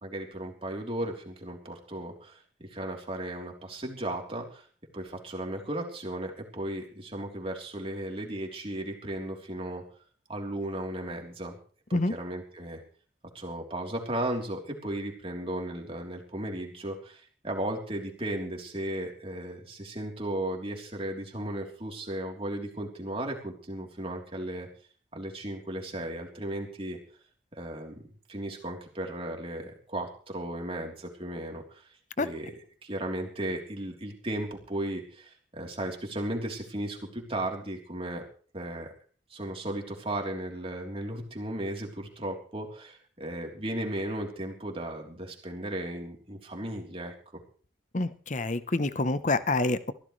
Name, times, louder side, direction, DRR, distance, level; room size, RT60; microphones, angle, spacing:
voice 1, 0.0-4.6 4.9-9.8 10.3-11.6 11.9-12.8 13.3-24.7 25.1-27.0 27.5-28.0 28.3-31.8 32.2-32.5 32.8-38.2 38.5-38.9 39.3-47.4, right 1 dB, 30° right, 1 dB, 3.5 m, -35 dB
voice 2, 47.9-49.9, left 2 dB, 40° left, 13 dB, 0.9 m, -27 dB
22.5 x 15.0 x 3.3 m, 0.42 s
head